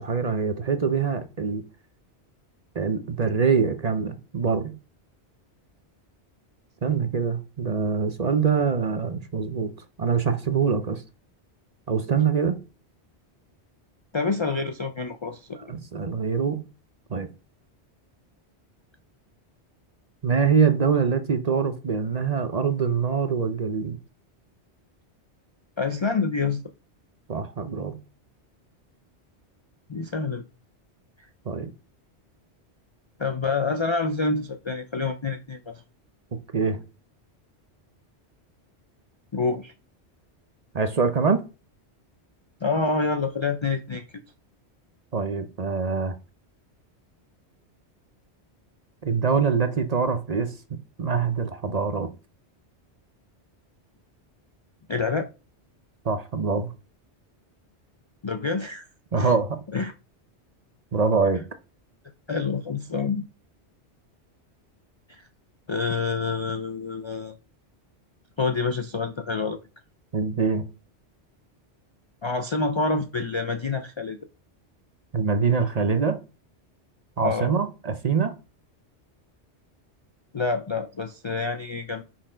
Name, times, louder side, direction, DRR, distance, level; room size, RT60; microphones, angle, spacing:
voice 1, 0.0-1.6 2.7-4.7 6.8-9.7 10.0-11.0 11.9-12.6 15.7-16.6 17.1-17.3 20.2-24.0 27.3-28.0 31.5-31.7 36.5-36.8 40.7-41.4 45.1-46.1 49.0-52.1 56.0-56.7 59.1-59.6 60.9-61.4 70.1-70.7 75.1-76.2 77.2-78.3, right 5 dB, 40° right, 0.7 m, -24 dB
voice 2, 14.1-15.7 25.8-26.6 29.9-30.5 33.2-35.8 39.3-39.7 42.6-44.1 54.9-55.3 58.2-58.9 59.2-59.3 59.7-59.9 62.3-63.2 65.7-67.3 68.4-69.6 72.2-74.2 77.2-77.5 80.3-82.0, left 4 dB, 45° left, 0.3 m, -27 dB
5.9 x 4.4 x 5.0 m
omnidirectional pair, 1.2 m